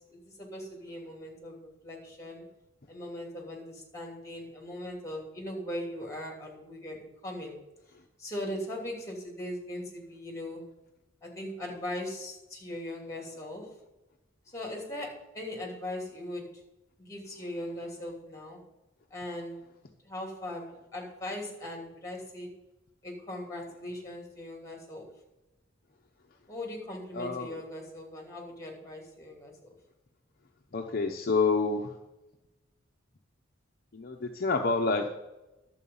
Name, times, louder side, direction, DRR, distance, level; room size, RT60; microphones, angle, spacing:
voice 1, 0.1-2.5 2.9-7.6 8.2-10.6 11.2-13.7 14.5-16.5 17.0-18.6 19.1-19.6 20.0-22.5 23.0-25.1 26.5-29.8, left 1 dB, 15° left, 1 dB, 2.8 m, -39 dB
voice 2, 27.1-27.6 30.7-31.9 33.9-35.1, left 4 dB, 50° left, 3 dB, 0.7 m, -28 dB
11.0 x 7.6 x 5.5 m, 0.99 s
head